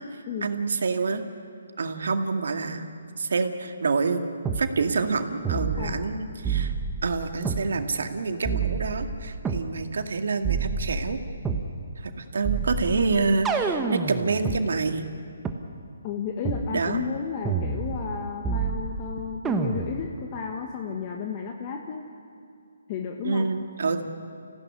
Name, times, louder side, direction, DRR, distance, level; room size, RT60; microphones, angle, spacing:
voice 1, 0.4-1.2 1.8-2.9 3.2-4.2 4.6-6.7 7.0-11.2 12.0-15.1 16.7-17.0 23.2-24.0, right 4 dB, 70° right, 6 dB, 2.0 m, -27 dB
sound 1, 4.5-4.6 5.5-6.1 6.5-7.7 8.5-9.7 10.4-11.7 12.5-14.6 15.5-15.6 16.5-16.7 17.5-18.2 18.5-19.1 19.5-20.1, right 5 dB, 10° right, 1.3 m, -28 dB
voice 2, 5.8-6.1 16.0-22.1 22.9-23.5, left 6 dB, 30° left, 2 dB, 1.6 m, -33 dB
26.0 x 16.5 x 9.8 m, 2.4 s
hypercardioid pair, 160°, 0 cm